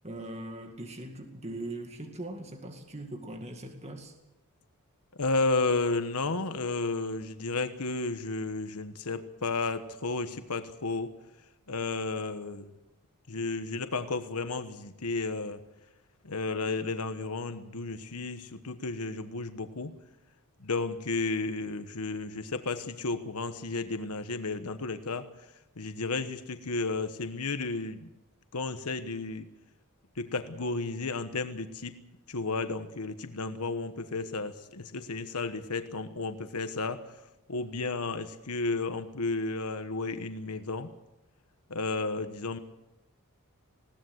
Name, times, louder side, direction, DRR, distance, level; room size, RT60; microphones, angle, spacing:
voice 1, 0.0-4.1, right 1 dB, 30° right, 4 dB, 2.1 m, -40 dB
voice 2, 5.2-11.1 11.7-12.7 13.3-15.6 16.2-19.9 20.6-25.3 25.8-28.1 28.5-29.5 30.2-32.0 32.3-37.2 37.5-40.9 41.7-42.6, left 3 dB, 85° left, 9 dB, 1.2 m, -32 dB
20.5 x 17.0 x 8.0 m, 0.93 s
head